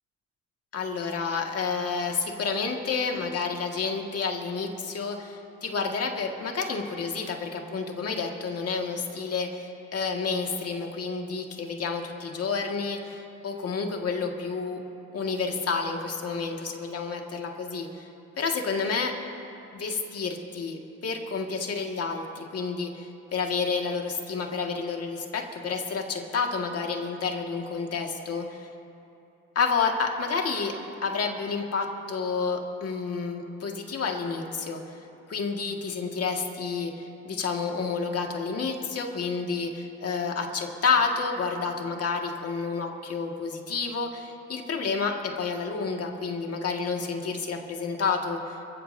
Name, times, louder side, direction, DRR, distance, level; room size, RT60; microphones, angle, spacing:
voice 1, 0.7-14.8 15.1-18.1 18.4-19.1 19.7-28.7 29.6-30.7 31.0-48.6, left 5 dB, 50° left, 2 dB, 1.9 m, -30 dB
27.5 x 15.0 x 2.7 m, 2.8 s
cardioid pair, 90°, 30 cm